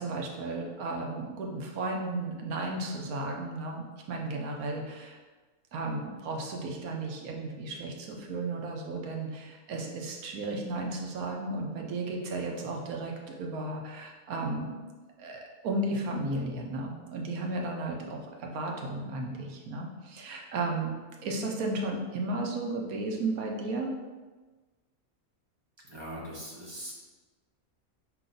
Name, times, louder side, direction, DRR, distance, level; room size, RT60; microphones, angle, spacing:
voice 1, 0.0-5.2 5.7-14.8 15.2-20.9 21.2-23.9, right 2 dB, 80° right, 1 dB, 1.2 m, -34 dB
voice 2, 25.9-26.9, equal, 25° right, -5 dB, 0.7 m, -41 dB
4.5 x 3.0 x 3.8 m, 1.3 s
omnidirectional pair, 1.5 m